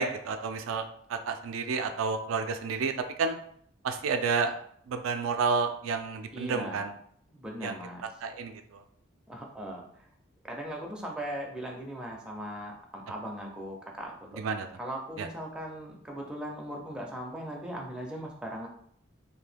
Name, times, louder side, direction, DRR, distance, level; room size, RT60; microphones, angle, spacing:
voice 1, 0.0-2.9 3.2-3.4 3.8-6.9 7.6-7.8 8.2-8.8 14.4-14.7 15.2-15.3, right 5 dB, 85° right, 6 dB, 0.3 m, -30 dB
voice 2, 6.3-6.9 7.3-8.1 9.3-10.1 10.4-14.4 14.8-18.7, equal, 5° right, -1 dB, 0.4 m, -39 dB
2.7 x 2.2 x 3.3 m, 0.65 s
head